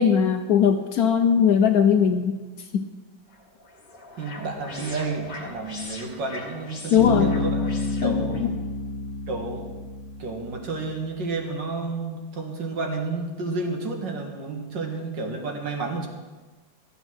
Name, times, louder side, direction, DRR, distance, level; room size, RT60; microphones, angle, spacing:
voice 1, 0.0-2.3 2.7-2.9 6.9-7.3 8.0-8.5, left 7 dB, 65° left, 7 dB, 1.0 m, -19 dB
sound 1, 3.3-8.5, left 2 dB, 30° left, 1.6 m, -41 dB
voice 2, 4.2-7.7 8.0-8.6 9.3-9.7 10.2-16.1, right 3 dB, 70° right, 2 dB, 2.3 m, -31 dB
Bass guitar, 7.0-10.6, left 3 dB, 45° right, 3.4 m, -28 dB
13.5 x 8.0 x 6.2 m, 1.3 s
omnidirectional pair, 2.0 m